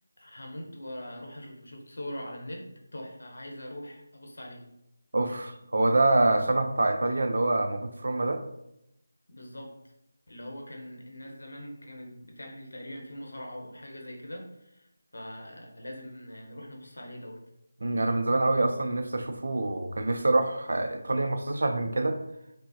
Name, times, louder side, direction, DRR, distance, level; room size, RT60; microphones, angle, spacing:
voice 1, 0.2-4.7 9.3-9.7 10.3-17.4, equal, 85° left, 2 dB, 0.9 m, -42 dB
voice 2, 5.1-8.4 17.8-22.2, right 2 dB, 70° right, 7 dB, 0.4 m, -26 dB
5.1 x 2.0 x 2.8 m, 0.82 s
figure-of-eight pair, 165°, 0 cm